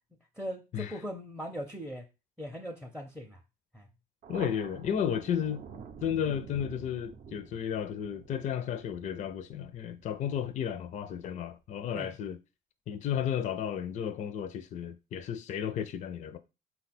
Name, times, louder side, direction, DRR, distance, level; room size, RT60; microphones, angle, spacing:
voice 1, 0.4-2.1 2.4-3.4 3.7-3.9 11.9-12.1, equal, 5° right, 0.5 m, -39 dB
Thunder, 4.2-11.3, right 6 dB, 50° right, 0.5 m, -48 dB
voice 2, 4.3-5.6 6.0-12.4 12.9-16.4, left 9 dB, 45° left, 0.4 m, -33 dB
4.1 x 2.2 x 4.1 m
cardioid pair, 110°, 17 cm